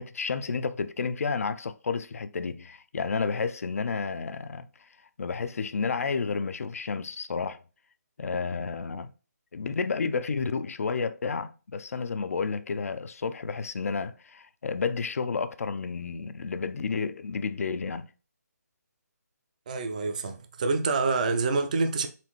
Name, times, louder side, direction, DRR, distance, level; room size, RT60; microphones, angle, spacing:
voice 1, 0.0-4.9 5.2-7.6 8.2-9.1 9.5-18.1, left 5 dB, 55° left, 0.4 m, -31 dB
voice 2, 19.7-22.1, right 4 dB, 25° right, 0.4 m, -27 dB
4.2 x 3.4 x 3.0 m
figure-of-eight pair, 165°, 9 cm